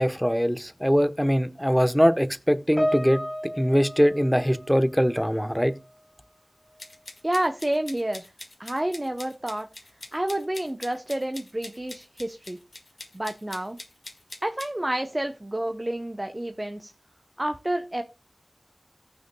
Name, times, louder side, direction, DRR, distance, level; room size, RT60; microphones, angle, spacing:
voice 1, 0.0-3.2 3.6-5.8, equal, ahead, 1.0 m, -22 dB
Piano, 2.8-5.4 5.7-6.0 6.8-6.9, equal, 20° left, 1.5 m, -32 dB
sound 1, 6.8-14.7, left 2 dB, 70° left, 1.7 m, -43 dB
voice 2, 7.2-8.3 8.6-9.7 10.1-12.6 13.1-13.8 14.4-16.9 17.4-18.0, right 1 dB, 30° right, 0.8 m, -29 dB
17.5 x 6.4 x 2.2 m
wide cardioid pair, 45°, 0 cm